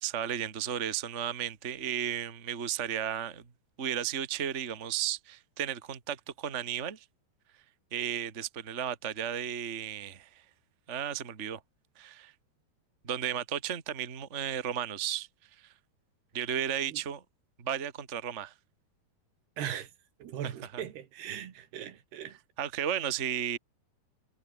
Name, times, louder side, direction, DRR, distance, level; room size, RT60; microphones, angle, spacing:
voice 1, 0.0-3.4 3.8-7.0 7.9-10.3 10.9-11.6 12.0-12.3 13.0-15.3 15.6-15.7 16.3-17.2 17.6-18.5 20.7-20.8 22.6-23.6, right 9 dB, 30° right, 1.4 m, -34 dB
voice 2, 19.6-19.9 20.2-22.4, right 10 dB, 80° right, 4.3 m, -39 dB
omnidirectional pair, 4.6 m